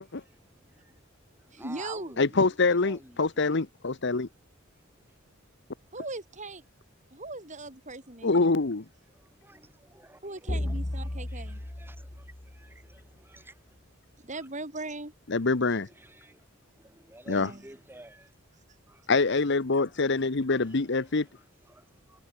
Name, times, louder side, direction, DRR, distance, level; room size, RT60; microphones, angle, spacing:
voice 1, 0.1-1.0 1.3-3.5 4.7-5.2 9.1-13.7 14.3-14.5 15.3-16.5 16.8-18.3 18.9-19.1 19.8-20.1 20.5-22.2, right 1 dB, 10° right, 4.7 m, -53 dB
voice 2, 1.5-2.2 5.9-6.6 7.1-8.5 10.2-11.6 14.2-15.1 17.3-17.6, right 2 dB, 35° right, 6.7 m, -39 dB
voice 3, 2.2-4.3 8.2-8.8 15.3-15.9 17.3-17.5 19.1-21.3, left 3 dB, 60° left, 1.0 m, -25 dB
sound 1, 10.5-13.0, left 1 dB, 35° left, 1.4 m, -34 dB
head